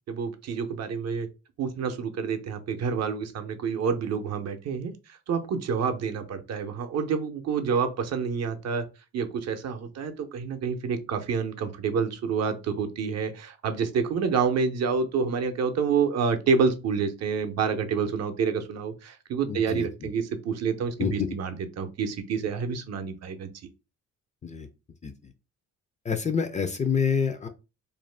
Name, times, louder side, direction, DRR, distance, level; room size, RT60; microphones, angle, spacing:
voice 1, 0.1-1.3 1.6-4.9 5.3-8.9 9.1-23.5, right 5 dB, 60° right, 6 dB, 0.6 m, -28 dB
voice 2, 19.4-20.1 21.0-21.3 24.4-24.7 25.0-25.3 26.0-27.5, left 6 dB, 25° left, 9 dB, 0.3 m, -28 dB
2.5 x 2.1 x 3.2 m, 0.29 s
cardioid pair, 90°, 30 cm